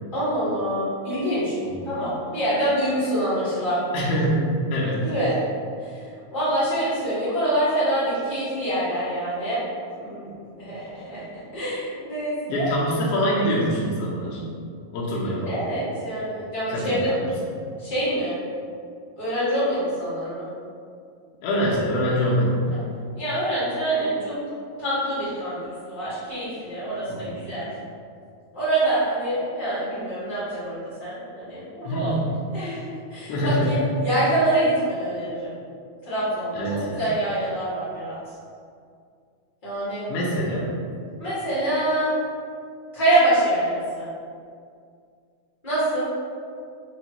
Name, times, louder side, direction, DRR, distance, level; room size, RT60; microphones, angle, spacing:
voice 1, 0.1-1.6 1.8-3.8 5.0-5.4 5.8-6.0 6.3-9.6 9.9-10.3 10.6-11.2 11.5-12.6 15.4-17.1 17.8-18.4 19.2-20.5 23.1-24.4 24.8-25.6 25.9-27.7 28.5-32.1 32.5-32.8 33.1-35.5 36.0-38.2 39.6-40.1 41.2-42.1 42.9-44.1 45.6-46.1, right 1 dB, 55° left, -13 dB, 0.5 m, -25 dB
voice 2, 3.9-5.0 12.5-14.4 14.9-15.7 16.7-17.5 21.4-22.6 27.1-27.4 31.8-32.3 33.3-33.8 36.5-37.0 40.1-40.8, equal, 80° left, -6 dB, 1.5 m, -25 dB
5.0 x 2.3 x 2.8 m, 2.3 s
omnidirectional pair, 3.4 m